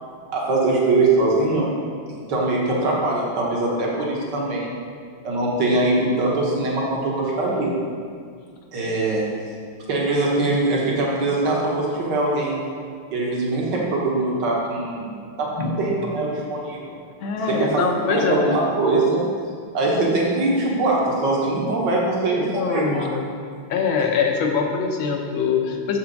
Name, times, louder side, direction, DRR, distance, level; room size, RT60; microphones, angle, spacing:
voice 1, 0.3-1.7 2.3-4.7 5.2-7.7 8.7-9.2 9.9-12.6 13.1-15.1 15.4-16.8 17.5-17.8 18.1-19.2 19.7-23.1, right 2 dB, 55° right, -3 dB, 1.9 m, -22 dB
voice 2, 17.2-18.5 22.4-23.3 23.7-26.0, left 5 dB, 70° left, 2 dB, 1.6 m, -23 dB
7.3 x 5.8 x 5.2 m, 2.1 s
omnidirectional pair, 2.4 m